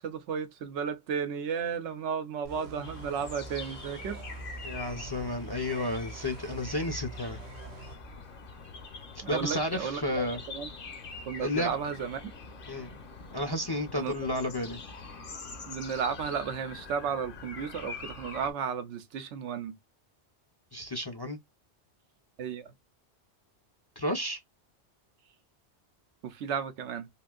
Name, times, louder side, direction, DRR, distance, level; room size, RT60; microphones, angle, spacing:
voice 1, 0.0-4.2 9.2-10.7 11.3-12.3 14.0-14.1 15.7-19.8 22.4-22.7 26.2-27.1, right 7 dB, 90° right, 0.9 m, -34 dB
sound 1, 2.4-8.0, right 2 dB, 65° right, 1.0 m, -45 dB
sound 2, 2.8-18.5, left 4 dB, 55° left, 0.9 m, -44 dB
voice 2, 4.6-7.4 9.3-10.4 11.4-11.8 12.7-12.9 13.3-14.8 20.7-21.4 24.0-24.4, left 1 dB, 30° left, 0.5 m, -32 dB
3.6 x 2.5 x 2.3 m
omnidirectional pair, 1.2 m